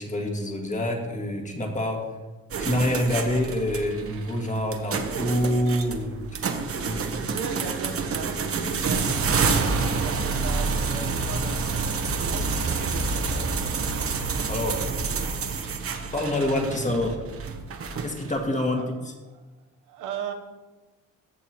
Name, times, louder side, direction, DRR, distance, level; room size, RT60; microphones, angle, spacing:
voice 1, 0.0-2.2 2.6-7.3 14.5-14.8 16.1-17.2 18.0-18.9, left 1 dB, 25° left, 1 dB, 2.1 m, -27 dB
sound 1, 2.5-18.4, right 4 dB, 50° right, 1.1 m, -28 dB
voice 2, 7.1-14.2 14.8-15.8 18.7-18.9 19.3-20.3, right 7 dB, 90° right, 5 dB, 1.1 m, -38 dB
14.5 x 6.9 x 3.1 m, 1.2 s
cardioid pair, 90°, 30 cm